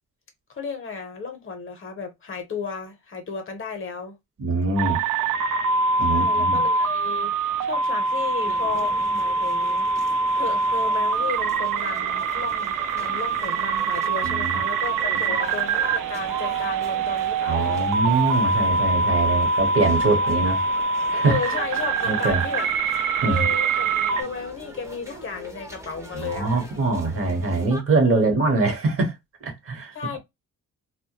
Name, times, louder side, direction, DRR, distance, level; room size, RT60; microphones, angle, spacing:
voice 1, 0.5-4.1 6.1-7.3 7.6-17.8 21.3-22.9 23.2-23.9 24.2-26.7 28.0-28.2 29.9-30.2, left 5 dB, 40° left, 0.7 m, -34 dB
voice 2, 4.4-5.0 6.0-6.6 14.2-14.6 17.5-20.6 21.1-21.4 22.0-22.4 23.1-23.5 26.1-29.1 29.4-30.2, right 3 dB, 45° right, 0.9 m, -23 dB
sound 1, 4.8-24.2, right 4 dB, 80° right, 0.5 m, -24 dB
sound 2, 8.4-27.8, right 2 dB, 10° right, 0.5 m, -41 dB
2.1 x 2.1 x 2.8 m
cardioid pair, 115°, 32 cm